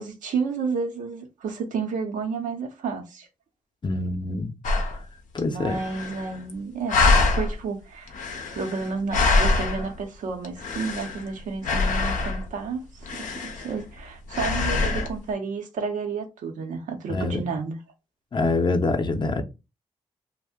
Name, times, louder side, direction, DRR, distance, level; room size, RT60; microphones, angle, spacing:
voice 1, 0.0-3.3 5.4-8.1 8.5-12.8 13.2-17.8, right 5 dB, 80° right, 0.7 m, -31 dB
voice 2, 3.8-4.5 5.3-5.8 17.1-17.4 18.3-19.4, left 3 dB, 35° left, 0.6 m, -25 dB
sound 1, 4.6-5.0 5.4-5.5 5.7-6.5 6.9-7.5 8.1-10.0 10.4-11.3 11.6-12.5 13.0-14.0 14.3-15.1, left 3 dB, 80° left, 0.6 m, -24 dB
2.4 x 2.1 x 3.5 m
supercardioid pair, 45°, 13 cm